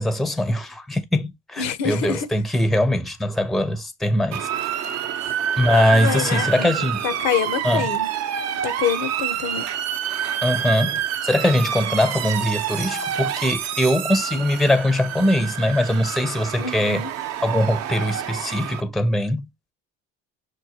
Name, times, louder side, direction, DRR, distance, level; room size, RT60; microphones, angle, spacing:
voice 1, 0.0-4.5 5.6-7.0 7.6-7.9 10.4-17.1 17.4-19.5, left 1 dB, ahead, 0.6 m, -21 dB
voice 2, 1.6-2.3 5.9-6.7 7.0-8.1 8.6-9.7 16.6-17.1, left 8 dB, 65° left, 0.8 m, -26 dB
Motor vehicle (road) / Siren, 4.3-18.8, right 9 dB, 60° right, 0.7 m, -27 dB
6.3 x 2.2 x 2.8 m
supercardioid pair, 85°, 30 cm